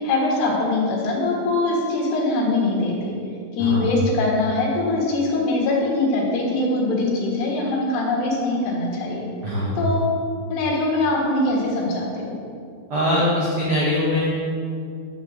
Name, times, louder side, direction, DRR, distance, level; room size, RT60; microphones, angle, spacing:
voice 1, 0.0-3.1 3.5-9.2 9.8-10.1 10.5-12.3, left 2 dB, 80° left, -3 dB, 3.8 m, -22 dB
voice 2, 9.4-9.8 12.9-14.3, left 1 dB, 85° right, -7 dB, 1.2 m, -22 dB
11.0 x 4.1 x 6.5 m, 2.3 s
omnidirectional pair, 4.8 m